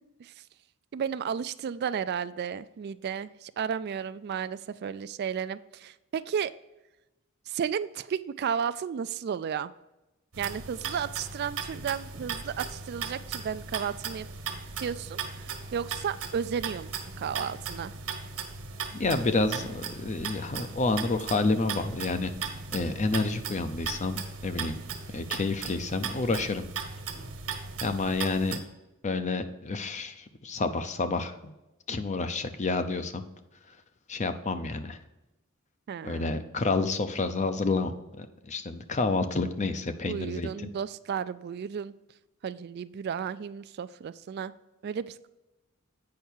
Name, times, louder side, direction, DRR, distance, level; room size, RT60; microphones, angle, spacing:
voice 1, 0.9-6.5 7.5-9.7 10.4-14.3 14.8-16.9 17.2-17.9 35.9-36.4 40.1-42.0 42.4-44.5 44.8-45.3, right 7 dB, 50° right, 14 dB, 0.3 m, -33 dB
sound 1, 10.3-28.6, right 5 dB, 90° right, 1.3 m, -37 dB
voice 2, 18.9-22.3 22.7-24.8 25.1-26.6 27.8-28.6 29.0-31.5 31.9-33.2 34.1-35.0 36.0-40.7, left 3 dB, 35° left, 9 dB, 0.6 m, -29 dB
8.6 x 5.7 x 4.5 m, 1.0 s
head